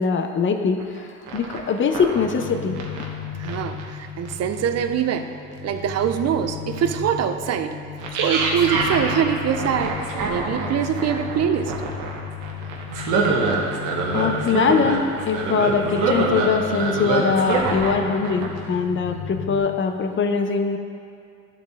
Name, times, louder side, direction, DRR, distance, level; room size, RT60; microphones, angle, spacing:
voice 1, 0.0-2.8 14.1-20.8, left 5 dB, 40° left, 6 dB, 0.6 m, -22 dB
sound 1, 0.8-1.0 1.3-3.1 3.4-3.8 4.2-4.3 5.0-5.1 5.8-6.0 6.7-6.8 8.0-18.0 18.2-18.6, right 4 dB, 90° right, 1.0 m, -25 dB
sound 2, 2.1-19.6, left 8 dB, 70° left, 1.1 m, -35 dB
voice 2, 3.4-5.3 5.6-7.8 8.1-11.7, right 9 dB, 60° right, 8 dB, 0.5 m, -24 dB
12.5 x 4.2 x 3.5 m, 2.4 s
cardioid pair, 90°, 30 cm